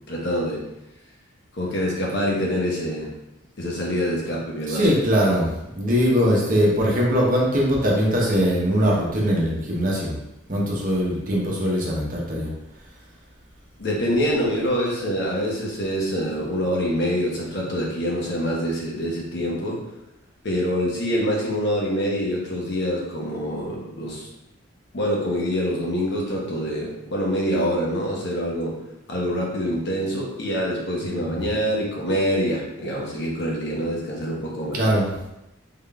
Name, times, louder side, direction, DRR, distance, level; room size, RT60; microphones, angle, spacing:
voice 1, 0.1-0.6 1.6-3.1 3.6-4.9 13.8-19.8 20.4-24.3 24.9-28.7 29.1-34.8, equal, 55° left, -3 dB, 0.9 m, -25 dB
voice 2, 4.7-10.2 10.5-12.5 31.0-31.5 34.7-35.1, equal, 40° right, -3 dB, 0.8 m, -21 dB
3.7 x 3.6 x 2.2 m, 0.90 s
head